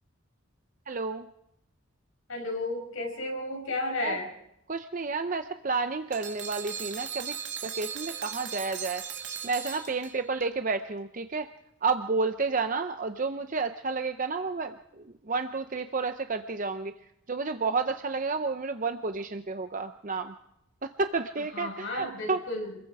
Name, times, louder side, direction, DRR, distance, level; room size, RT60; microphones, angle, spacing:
voice 1, 0.9-1.3 4.0-4.2 4.7-7.3 7.6-9.0 9.4-11.5 11.8-16.9 17.3-20.3 20.8-22.4, right 4 dB, 40° right, 8 dB, 0.7 m, -31 dB
voice 2, 2.3-4.3 21.5-22.8, left 2 dB, 75° left, 1 dB, 6.2 m, -33 dB
sound 1, 6.1-10.4, right 8 dB, 60° right, 2.5 m, -38 dB
27.5 x 21.5 x 4.8 m, 0.81 s
head